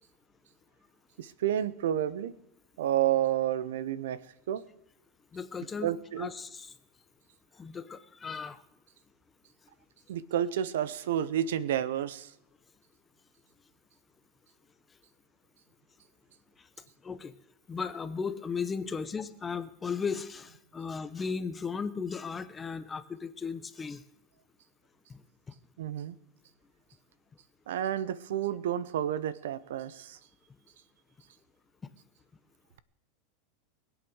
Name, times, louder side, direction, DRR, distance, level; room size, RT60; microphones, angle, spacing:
voice 1, 1.2-2.3 2.8-4.2 4.5-4.6 5.8-6.3 10.1-12.3 25.8-26.2 27.7-30.2, right 11 dB, 90° right, 17 dB, 0.9 m, -30 dB
voice 2, 5.3-6.7 7.6-8.6 17.0-17.3 17.7-24.0 25.1-25.2, left 5 dB, 15° left, 12 dB, 0.7 m, -36 dB
21.5 x 8.2 x 6.4 m, 0.83 s
supercardioid pair, 155°, 0 cm